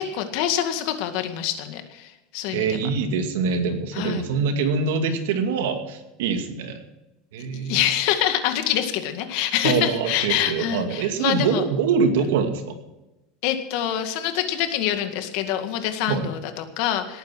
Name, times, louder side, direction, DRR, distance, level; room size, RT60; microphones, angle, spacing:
voice 1, 0.0-2.8 3.9-4.3 7.5-11.6 13.4-17.2, left 11 dB, 60° left, 7 dB, 2.0 m, -25 dB
voice 2, 2.5-6.8 7.3-7.8 9.6-12.6 16.1-16.3, right 5 dB, 90° right, 6 dB, 2.3 m, -24 dB
18.5 x 9.4 x 6.3 m, 0.99 s
supercardioid pair, 160°, 0 cm